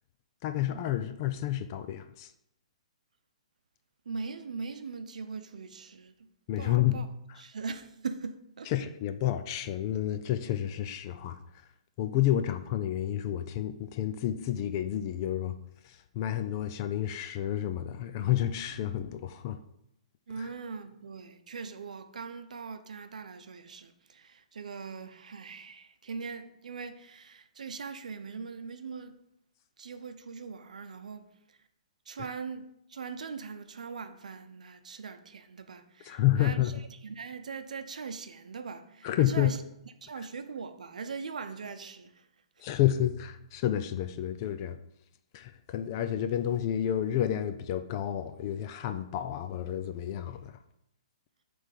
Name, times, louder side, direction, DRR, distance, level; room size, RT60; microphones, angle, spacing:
voice 1, 0.4-2.3 6.5-7.4 8.7-11.4 12.0-15.5 15.8-19.6 20.4-20.5 36.0-36.7 39.0-39.5 42.6-44.8 45.3-50.6, left 12 dB, 30° left, 0.4 m, -30 dB
voice 2, 4.1-6.3 6.6-7.1 7.4-8.7 20.3-29.2 29.8-31.2 32.1-36.6 37.0-39.6 40.0-42.3, right 5 dB, 85° right, 0.7 m, -41 dB
7.3 x 3.4 x 5.3 m
hypercardioid pair, 165°, 4 cm